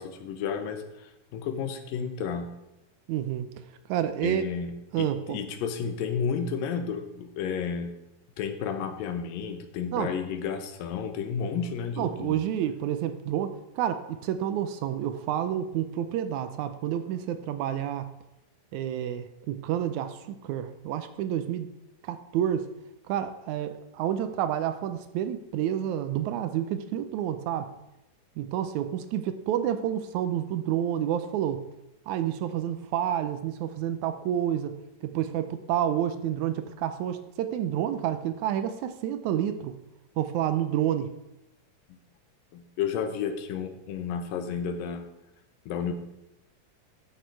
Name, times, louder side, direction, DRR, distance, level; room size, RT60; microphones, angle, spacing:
voice 1, 0.0-2.5 4.2-7.9 8.4-12.4 41.9-42.0 42.5-45.1 45.7-45.9, left 6 dB, 85° left, 8 dB, 2.6 m, -32 dB
voice 2, 3.1-3.5 3.9-4.4 4.9-5.4 9.9-10.1 12.0-18.1 18.7-21.7 22.0-22.7 23.1-27.7 28.4-31.6 32.1-39.8 40.2-41.1, right 10 dB, 80° right, 10 dB, 1.8 m, -29 dB
12.5 x 6.5 x 4.6 m, 0.91 s
omnidirectional pair, 3.9 m